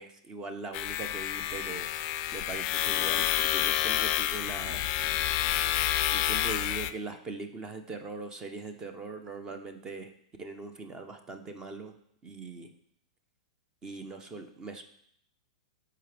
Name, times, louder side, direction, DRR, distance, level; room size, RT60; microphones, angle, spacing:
voice 1, 0.0-1.9 2.3-4.9 6.1-10.1 10.4-12.0 12.2-12.7 13.8-14.8, right 3 dB, 20° right, 7 dB, 1.0 m, -41 dB
sound 1, 0.7-6.9, left 13 dB, 40° left, 0.4 m, -29 dB
13.0 x 4.8 x 3.5 m, 0.69 s
hypercardioid pair, 130°, 3 cm